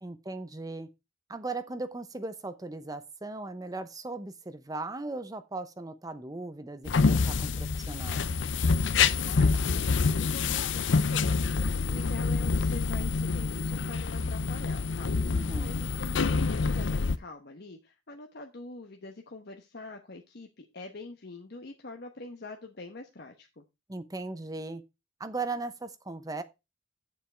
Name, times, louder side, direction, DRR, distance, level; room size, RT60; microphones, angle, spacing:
voice 1, 0.0-0.9 1.3-8.3 15.3-15.8 23.9-24.8 25.2-26.4, right 3 dB, 20° right, 0.7 m, -38 dB
sound 1, 6.8-17.2, left 4 dB, 70° left, 0.6 m, -27 dB
voice 2, 9.2-23.6, left 2 dB, 55° left, 1.0 m, -45 dB
9.2 x 7.4 x 4.4 m
head